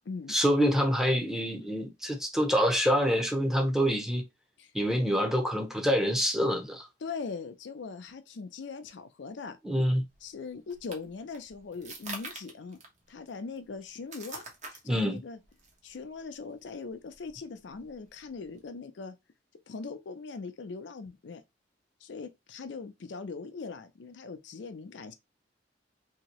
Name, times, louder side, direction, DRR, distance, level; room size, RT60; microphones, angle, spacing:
voice 1, 0.3-4.2 4.7-6.9 9.6-10.0 14.8-15.2, equal, 5° right, 0.7 m, -26 dB
voice 2, 7.0-9.6 10.2-12.8 13.1-15.4 15.8-19.1 19.7-21.4 22.0-25.1, left 4 dB, 80° left, 0.5 m, -41 dB
sound 1, 10.1-18.7, right 3 dB, 40° right, 0.9 m, -48 dB
2.9 x 2.8 x 2.9 m
head